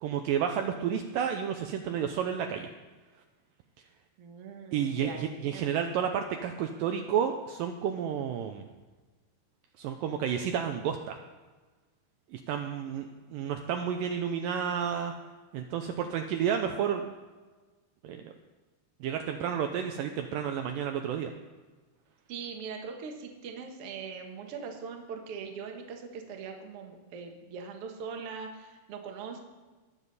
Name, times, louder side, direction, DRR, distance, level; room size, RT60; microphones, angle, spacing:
voice 1, 0.0-2.7 4.7-8.7 9.8-11.2 12.3-15.2 15.5-17.1 18.0-18.3 19.0-21.3, right 8 dB, 85° right, 5 dB, 2.0 m, -31 dB
voice 2, 4.2-5.9 22.3-29.4, right 5 dB, 60° right, 3 dB, 1.6 m, -41 dB
20.5 x 7.1 x 4.1 m, 1.3 s
omnidirectional pair, 4.5 m